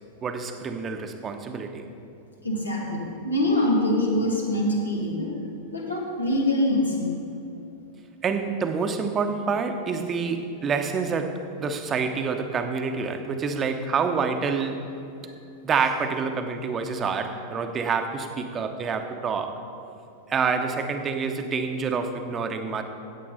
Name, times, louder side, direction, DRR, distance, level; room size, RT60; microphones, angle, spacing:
voice 1, 0.2-1.8 8.2-14.8 15.6-19.6 20.3-22.8, right 5 dB, 25° right, 6 dB, 0.9 m, -27 dB
voice 2, 2.4-5.3 5.7-7.2, left 1 dB, 80° left, -1 dB, 1.9 m, -24 dB
14.5 x 8.6 x 4.0 m, 2.7 s
figure-of-eight pair, 90°, 0 cm